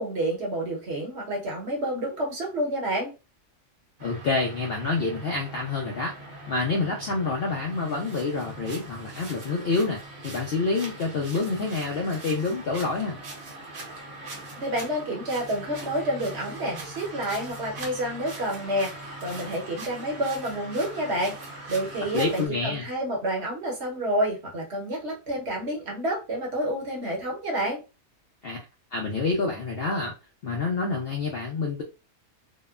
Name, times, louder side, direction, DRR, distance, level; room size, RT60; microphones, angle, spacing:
voice 1, 0.0-3.1 14.6-21.3 21.7-27.8, right 1 dB, 55° right, -1 dB, 1.0 m, -29 dB
voice 2, 4.0-6.1 6.5-13.2 22.1-22.9 28.4-28.6 28.9-30.1 30.4-31.8, left 3 dB, 70° left, 0 dB, 0.6 m, -27 dB
sound 1, 4.0-22.5, right 2 dB, 75° right, 1.3 m, -41 dB
2.8 x 2.0 x 2.3 m, 0.29 s
omnidirectional pair, 1.5 m